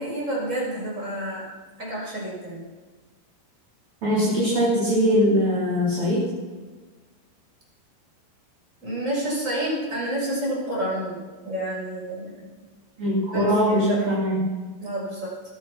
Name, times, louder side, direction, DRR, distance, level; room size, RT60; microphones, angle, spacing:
voice 1, 0.0-1.4 1.8-2.6 8.8-12.4 13.3-14.0 14.8-15.3, right 1 dB, 15° right, -5 dB, 6.5 m, -29 dB
voice 2, 4.0-6.2 13.0-14.4, equal, 30° right, -7 dB, 3.6 m, -21 dB
20.5 x 10.5 x 5.9 m, 1.3 s
omnidirectional pair, 6.0 m